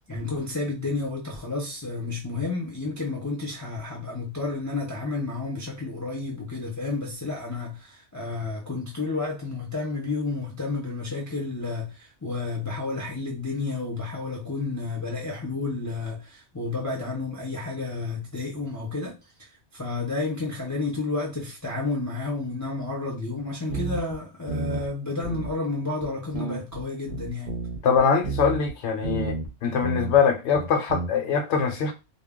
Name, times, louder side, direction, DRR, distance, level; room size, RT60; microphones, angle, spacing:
voice 1, 0.1-19.5 19.7-27.6, left 3 dB, 25° left, 0.4 m, -31 dB
sound 1, 23.7-24.2 24.5-24.9 25.2-25.5 26.0-26.1 26.3-28.8 29.0-29.5 29.8-30.2 30.5-31.1, right 4 dB, 50° right, 0.7 m, -31 dB
voice 2, 27.8-29.4 29.6-31.9, left 6 dB, 75° left, 0.9 m, -22 dB
2.2 x 2.0 x 3.5 m
omnidirectional pair, 1.2 m